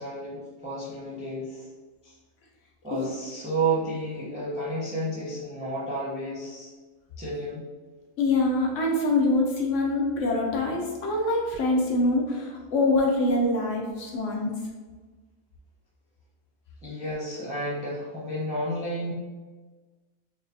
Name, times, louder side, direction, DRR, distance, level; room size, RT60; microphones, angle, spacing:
voice 1, 0.0-1.7 2.0-2.1 2.8-6.7 7.2-7.7 16.8-19.1, right 2 dB, 10° right, -6 dB, 0.4 m, -31 dB
voice 2, 8.2-14.5, left 2 dB, 70° left, -1 dB, 0.9 m, -24 dB
4.5 x 2.2 x 2.7 m, 1.3 s
omnidirectional pair, 1.5 m